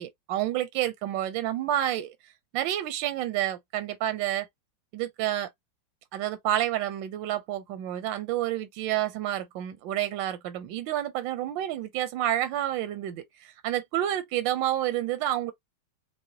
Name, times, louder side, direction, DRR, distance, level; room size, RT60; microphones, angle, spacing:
voice 1, 0.0-2.1 2.5-4.5 4.9-5.5 6.1-15.5, right 12 dB, 75° right, 1.1 m, -29 dB
4.8 x 2.1 x 2.7 m
omnidirectional pair, 2.4 m